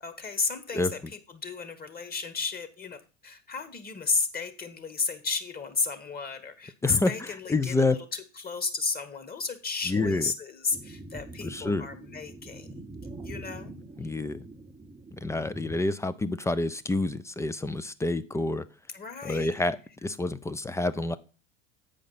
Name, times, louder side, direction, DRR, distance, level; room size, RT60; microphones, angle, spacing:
voice 1, 0.0-12.7 13.2-13.8 18.9-19.6, left 4 dB, 25° left, 11 dB, 1.5 m, -33 dB
voice 2, 6.8-8.0 9.9-10.2 11.4-11.9 14.0-14.4 15.2-18.7 19.2-21.2, left 2 dB, 10° left, 15 dB, 0.3 m, -28 dB
sound 1, 10.7-15.8, right 2 dB, 10° right, 0.7 m, -43 dB
8.3 x 5.1 x 5.5 m, 0.33 s
hypercardioid pair, 80°, 36 cm